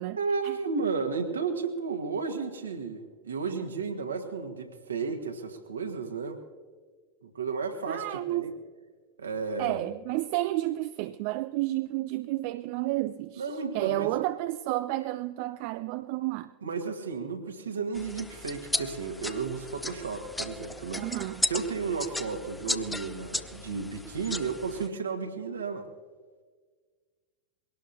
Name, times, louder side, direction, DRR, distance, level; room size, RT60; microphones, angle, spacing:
voice 1, 0.2-6.4 7.2-8.5 9.2-9.9 13.3-14.1 16.6-21.1 21.5-25.9, right 5 dB, 70° right, 1.6 m, -33 dB
voice 2, 7.9-8.5 9.6-13.4 13.7-16.5 20.9-21.4, right 17 dB, 45° right, 0.4 m, -31 dB
sound 1, 17.9-24.9, left 2 dB, 5° left, 0.6 m, -35 dB
22.5 x 17.5 x 2.8 m
figure-of-eight pair, 90°, 0 cm